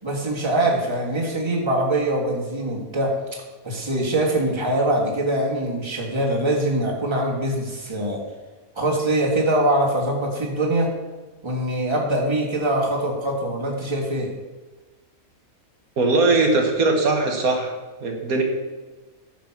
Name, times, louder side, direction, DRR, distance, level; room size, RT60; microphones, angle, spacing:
voice 1, 0.0-3.2 3.6-8.2 8.8-10.9 11.4-14.3, right 1 dB, 20° right, -2 dB, 1.9 m, -23 dB
voice 2, 16.0-17.7 18.0-18.4, right 3 dB, 85° right, 2 dB, 1.9 m, -20 dB
10.0 x 6.2 x 6.0 m, 1.2 s
omnidirectional pair, 1.5 m